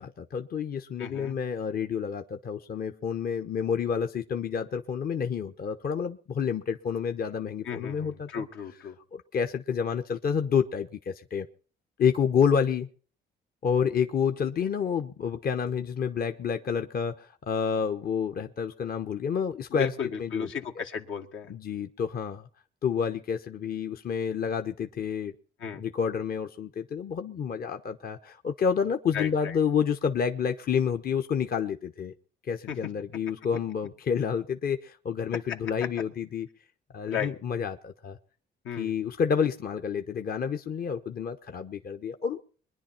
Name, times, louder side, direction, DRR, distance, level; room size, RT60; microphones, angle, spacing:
voice 1, 0.0-8.4 9.1-11.5 12.0-12.9 13.6-20.5 21.5-22.5 22.8-25.3 25.7-32.1 32.5-36.5 36.9-38.2 38.8-42.4, left 7 dB, 50° left, 6 dB, 0.9 m, -29 dB
voice 2, 1.0-1.3 7.6-9.0 19.7-21.5 25.6-25.8 29.1-29.6 32.7-32.8 35.5-35.6 37.1-37.3 38.6-38.9, left 7 dB, 80° left, 4 dB, 1.9 m, -34 dB
22.5 x 10.5 x 4.4 m, 0.42 s
cardioid pair, 90°, 20 cm